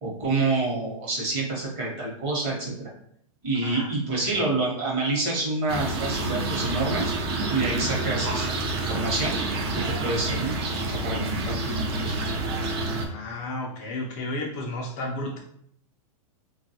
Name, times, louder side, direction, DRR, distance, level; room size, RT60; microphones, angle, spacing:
voice 1, 0.0-2.9 3.4-7.1 7.5-9.4 10.0-10.6 10.9-12.1, right 3 dB, 35° right, -2 dB, 1.0 m, -27 dB
sound 1, 5.7-13.1, right 2 dB, 50° right, 0.6 m, -28 dB
voice 2, 13.0-15.4, left 1 dB, 30° left, -1 dB, 0.4 m, -33 dB
3.3 x 2.3 x 2.7 m, 0.68 s
supercardioid pair, 160°, 18 cm